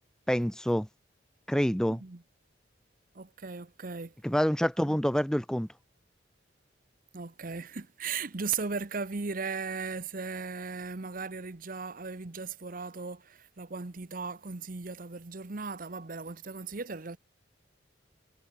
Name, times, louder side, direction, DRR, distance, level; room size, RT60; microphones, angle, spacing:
voice 1, 0.3-0.9 1.5-2.0 4.2-5.7, equal, 5° left, 0.9 m, -27 dB
voice 2, 1.9-2.2 3.1-4.1 4.8-5.0 7.1-17.2, right 4 dB, 50° right, 1.0 m, -37 dB
head